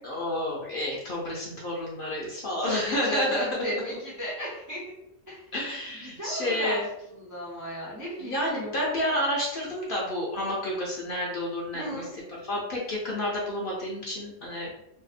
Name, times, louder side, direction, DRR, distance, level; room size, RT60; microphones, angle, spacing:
voice 1, 0.0-4.0 5.5-6.9 8.2-12.0 12.5-14.7, left 1 dB, 60° left, -4 dB, 0.6 m, -30 dB
voice 2, 2.6-4.8 5.3-5.5 6.0-6.8 7.1-8.7 11.7-12.1, equal, 30° right, -6 dB, 0.3 m, -35 dB
2.6 x 2.0 x 2.4 m, 0.82 s
omnidirectional pair, 1.3 m